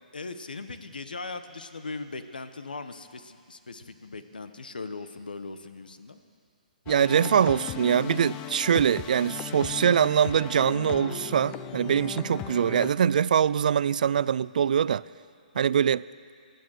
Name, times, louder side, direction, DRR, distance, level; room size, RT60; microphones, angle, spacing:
voice 1, 0.1-6.2 15.5-15.6, left 3 dB, 85° left, 10 dB, 1.1 m, -39 dB
sound 1, 6.9-12.9, left 9 dB, 25° left, 0.7 m, -37 dB
voice 2, 6.9-15.0 15.6-16.0, right 8 dB, 65° right, 20 dB, 0.3 m, -23 dB
24.5 x 9.3 x 6.4 m, 2.3 s
hypercardioid pair, 140°, 5 cm